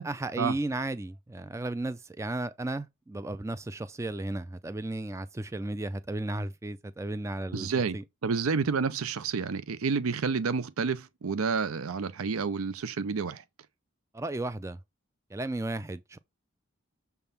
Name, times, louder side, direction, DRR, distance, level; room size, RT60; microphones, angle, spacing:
voice 1, 0.0-7.7 7.9-8.0 14.1-14.8 15.3-16.2, right 2 dB, 15° right, 0.3 m, -34 dB
voice 2, 7.5-8.0 8.2-13.4, right 5 dB, 85° right, 0.5 m, -29 dB
6.8 x 3.5 x 5.6 m
head